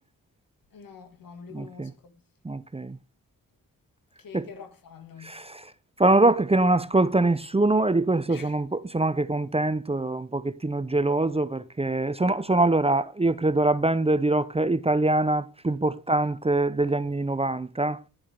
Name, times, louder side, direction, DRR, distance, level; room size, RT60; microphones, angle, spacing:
voice 1, 0.7-2.1 4.2-5.4 8.3-8.5 16.2-16.3, left 6 dB, 75° left, 1.9 m, -46 dB
voice 2, 1.5-1.9 2.4-3.0 4.3-4.4 5.2-5.7 6.0-18.0, right 2 dB, 15° right, 0.7 m, -24 dB
10.5 x 4.9 x 5.2 m
cardioid pair, 50°, 35 cm